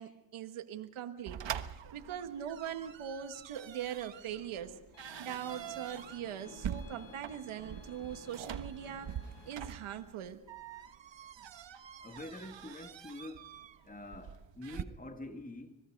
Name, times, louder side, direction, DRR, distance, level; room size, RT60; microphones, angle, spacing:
voice 1, 0.0-4.8 5.2-9.2 9.4-10.4, right 9 dB, 85° right, 1.6 m, -41 dB
sound 1, 1.3-14.8, right 9 dB, 65° right, 1.3 m, -45 dB
Gunshot gunfire / Fireworks, 4.3-10.6, left 2 dB, 50° left, 6.7 m, -56 dB
sound 2, 4.9-10.0, equal, 75° left, 5.0 m, -60 dB
voice 2, 12.0-13.5 13.8-15.8, left 1 dB, 15° left, 2.6 m, -46 dB
25.5 x 20.0 x 5.3 m
cardioid pair, 60°, 48 cm